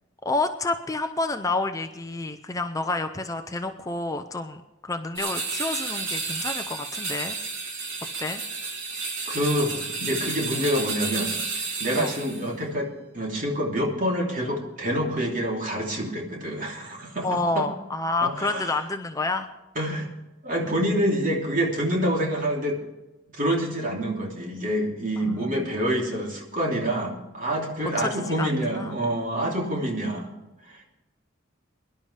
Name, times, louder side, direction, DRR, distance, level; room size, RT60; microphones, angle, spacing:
voice 1, 0.2-7.4 8.2-8.4 12.0-12.2 17.2-19.5 28.0-29.0, left 3 dB, 15° left, 7 dB, 0.6 m, -29 dB
sound 1, 5.2-12.5, right 4 dB, 70° right, 3.8 m, -31 dB
voice 2, 9.2-11.3 11.8-12.9 13.1-17.3 17.5-17.6 18.2-18.8 19.7-20.1 20.4-22.8 23.3-30.3 30.7-30.9, equal, 40° right, -1 dB, 3.0 m, -27 dB
23.0 x 11.5 x 3.4 m, 1.0 s
head